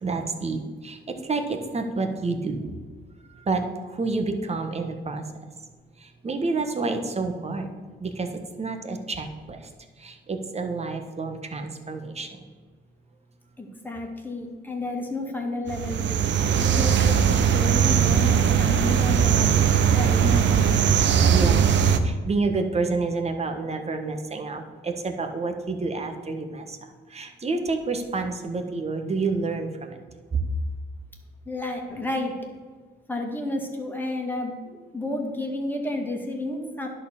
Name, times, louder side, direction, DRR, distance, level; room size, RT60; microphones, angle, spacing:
voice 1, 0.0-2.6 3.4-5.2 6.0-7.7 8.0-8.3 8.6-9.6 10.0-12.4 21.2-26.8 27.1-30.0 30.3-30.4, right 3 dB, 30° right, 5 dB, 1.3 m, -28 dB
voice 2, 13.6-16.2 16.6-19.5 19.9-20.8 31.5-32.4 33.1-36.9, left 2 dB, 10° left, 1 dB, 2.1 m, -31 dB
sound 1, 15.7-22.0, right 8 dB, 65° right, 0.8 m, -20 dB
10.5 x 4.4 x 7.2 m, 1.5 s
cardioid pair, 90°, 20 cm